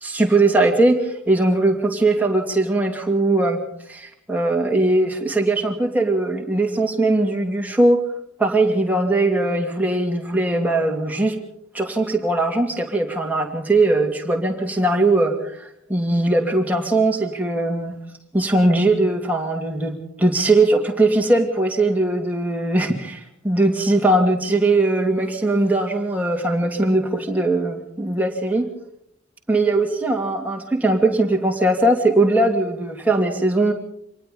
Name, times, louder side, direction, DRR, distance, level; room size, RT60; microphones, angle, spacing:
voice 1, 0.0-3.6 3.9-8.0 8.4-11.4 11.7-18.0 18.3-28.7 29.5-33.7, right 2 dB, 5° right, 1 dB, 2.4 m, -20 dB
25.5 x 19.0 x 5.4 m, 0.72 s
head